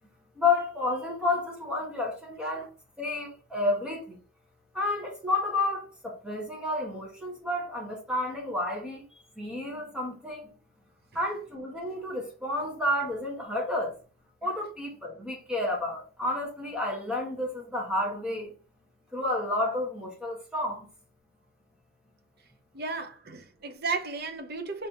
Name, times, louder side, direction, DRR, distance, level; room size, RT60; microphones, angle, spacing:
voice 1, 0.3-2.7 3.0-4.2 4.7-9.0 9.4-10.5 11.1-13.9 14.4-18.5 19.1-20.9, left 2 dB, 5° right, 1.3 m, -30 dB
voice 2, 22.7-24.9, right 4 dB, 50° right, 0.6 m, -34 dB
5.3 x 3.3 x 2.8 m
head